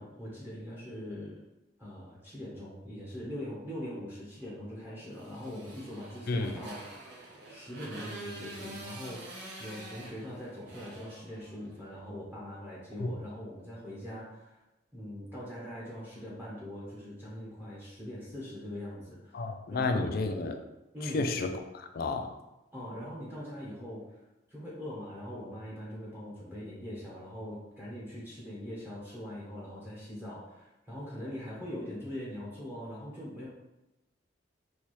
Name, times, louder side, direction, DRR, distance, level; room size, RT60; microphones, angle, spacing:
voice 1, 0.0-1.4 1.8-6.9 7.5-14.6 14.9-20.2 20.9-21.3 22.7-24.2 24.5-33.5, equal, 10° right, -7 dB, 0.8 m, -42 dB
Motorcycle, 5.1-11.8, right 1 dB, 65° right, 0.8 m, -46 dB
voice 2, 6.3-6.6 13.0-13.1 19.3-20.6 21.1-22.3, left 3 dB, 55° left, 6 dB, 0.4 m, -31 dB
4.1 x 2.3 x 3.1 m, 0.98 s
head